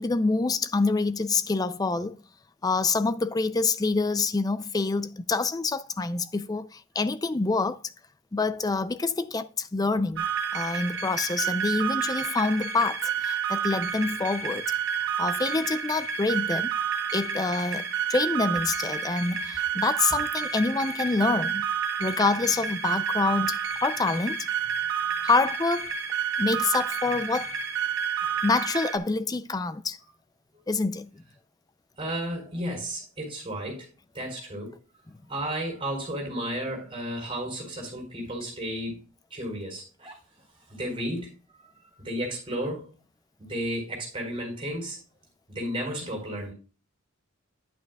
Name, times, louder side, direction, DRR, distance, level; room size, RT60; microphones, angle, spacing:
voice 1, 0.0-2.2 2.6-7.8 8.3-10.3 10.5-14.6 15.2-16.7 17.1-21.6 22.0-24.5 25.2-25.9 26.4-27.5 28.4-30.0 30.7-31.2, left 3 dB, 20° left, 0.4 m, -26 dB
sound 1, 10.2-29.0, right 7 dB, 60° right, 1.1 m, -30 dB
voice 2, 32.0-33.9 34.1-34.8 35.3-39.0 39.3-40.1 40.7-41.3 42.0-42.9 43.4-45.0 45.5-46.5, equal, 25° right, 4.5 m, -33 dB
10.0 x 8.8 x 2.3 m
head